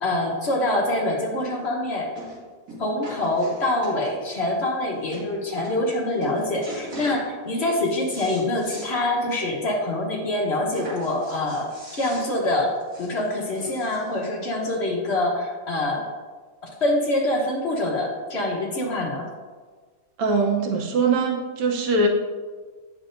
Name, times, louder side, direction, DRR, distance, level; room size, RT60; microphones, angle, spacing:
voice 1, 0.0-2.1 2.8-11.7 12.0-16.0 16.8-19.3, left 1 dB, 40° left, -2 dB, 1.1 m, -25 dB
sound 1, 1.4-1.5 2.2-2.4 2.7-4.3 4.8-4.9 5.1-5.3 5.6-6.0 6.2-7.2 7.6-8.9 9.3-9.4 9.7-9.8 10.7-14.2 15.0-15.1, right 1 dB, 55° right, 2.5 m, -39 dB
voice 2, 20.2-22.1, right 3 dB, 85° right, 1 dB, 1.6 m, -22 dB
8.8 x 6.1 x 2.6 m, 1.4 s
omnidirectional pair, 2.0 m